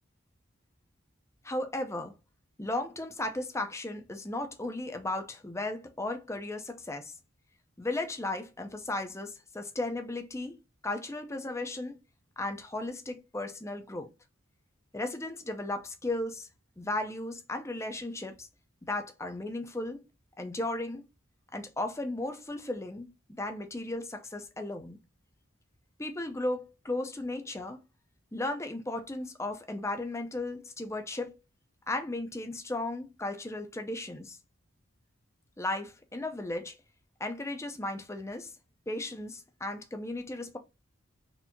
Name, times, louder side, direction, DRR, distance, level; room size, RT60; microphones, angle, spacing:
voice 1, 1.4-2.2 2.6-7.1 7.8-12.0 12.4-14.1 14.9-16.5 16.8-18.5 18.9-20.0 20.4-21.1 21.5-25.0 26.0-27.8 28.3-31.3 31.9-34.4 35.6-36.8 37.2-38.5 38.9-40.6, left 2 dB, 15° left, 0.6 m, -35 dB
4.4 x 3.3 x 2.7 m
head